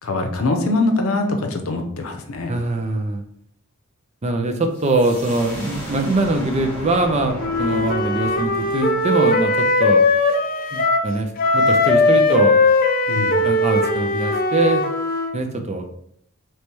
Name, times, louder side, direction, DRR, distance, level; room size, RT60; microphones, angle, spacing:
voice 1, 0.0-2.5 13.1-13.4, left 2 dB, 75° left, 5 dB, 0.7 m, -22 dB
voice 2, 2.5-3.2 4.2-10.0 10.7-12.6 13.4-14.8 15.3-15.9, right 2 dB, 30° right, 5 dB, 0.5 m, -22 dB
sound 1, 4.7-10.3, equal, 10° left, 1.3 m, -35 dB
Wind instrument woodwind instrument, 7.4-11.1 11.4-15.3, left 2 dB, 40° left, 0.4 m, -19 dB
3.2 x 3.1 x 4.5 m, 0.69 s
head